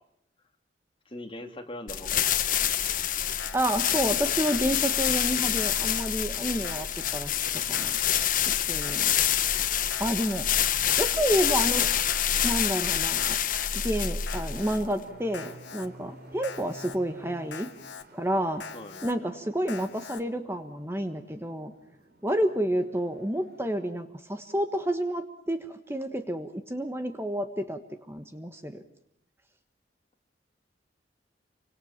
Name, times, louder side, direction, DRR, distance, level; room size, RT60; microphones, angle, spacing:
voice 1, 1.1-2.8 18.7-19.1, left 1 dB, 30° left, 5 dB, 2.6 m, -42 dB
sound 1, 1.9-15.0, left 10 dB, 50° left, 1.2 m, -27 dB
Alarm, 3.4-3.9 4.5-5.0 5.6-6.1 6.6-7.2 7.7-8.3 8.8-9.3 9.9-10.4 11.0-11.5 12.1-12.6 13.2-13.7 14.3-14.8 15.3-15.9 16.4-17.0 17.5-18.0 18.6-19.1 19.7-20.2, left 6 dB, 80° left, 1.7 m, -43 dB
voice 2, 3.5-7.4 7.7-7.9 8.6-9.1 10.0-10.4 11.0-11.9 12.4-13.4 13.7-17.7 18.1-18.6 19.0-21.7 22.2-28.8, right 1 dB, 15° right, 8 dB, 1.3 m, -29 dB
sound 2, 14.3-23.7, right 1 dB, 55° right, 4.7 m, -51 dB
28.5 x 25.5 x 7.3 m, 0.75 s
head